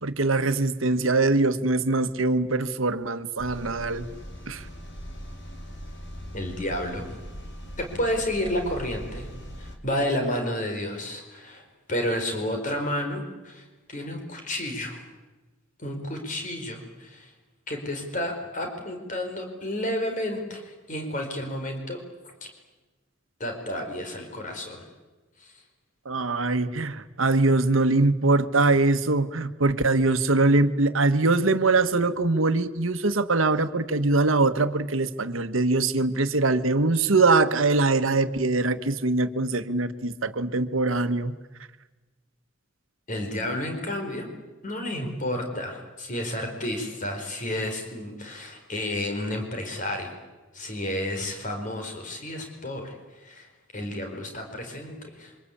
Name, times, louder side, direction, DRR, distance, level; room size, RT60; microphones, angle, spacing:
voice 1, 0.0-4.1 4.5-4.6 26.0-41.4, right 3 dB, 85° right, 10 dB, 1.3 m, -23 dB
sound 1, 3.4-9.8, equal, 60° left, 3.3 m, -40 dB
voice 2, 6.3-7.1 7.8-9.3 9.6-11.6 11.9-15.0 15.8-17.3 17.7-22.0 23.4-24.8 25.4-25.5 43.1-44.3 44.6-50.2 50.5-53.0 53.2-53.5 53.7-55.3, left 1 dB, 40° left, 4 dB, 4.6 m, -31 dB
27.5 x 24.5 x 8.7 m, 1.2 s
head